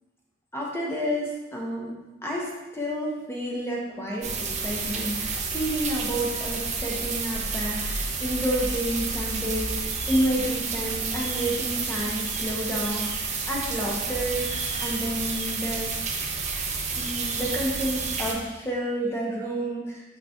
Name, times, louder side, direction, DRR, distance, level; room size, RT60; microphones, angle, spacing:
voice 1, 0.5-1.9 2.2-15.9 16.9-20.0, equal, 15° left, -3 dB, 1.2 m, -30 dB
sound 1, 4.2-18.3, right 4 dB, 35° right, 0.8 m, -30 dB
6.0 x 5.7 x 3.0 m, 1.1 s
head